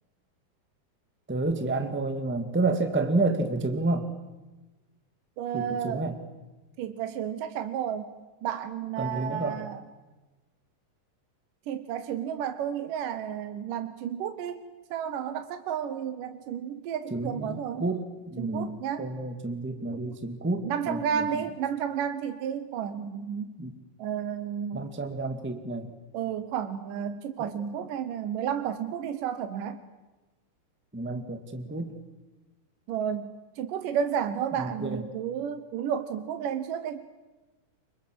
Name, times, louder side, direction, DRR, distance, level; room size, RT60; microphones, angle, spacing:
voice 1, 1.3-4.1 5.5-6.2 9.0-9.6 17.1-21.5 23.6-23.7 24.7-25.9 27.4-27.5 30.9-31.9 34.6-35.0, right 2 dB, 5° right, 7 dB, 1.2 m, -30 dB
voice 2, 5.4-6.1 6.8-8.1 8.4-9.8 11.7-14.6 14.9-17.8 18.4-19.1 19.9-20.1 20.6-23.5 24.0-24.9 26.1-29.8 32.9-37.0, right 8 dB, 75° right, 9 dB, 2.7 m, -32 dB
29.5 x 25.0 x 7.7 m, 1.2 s
omnidirectional pair, 4.0 m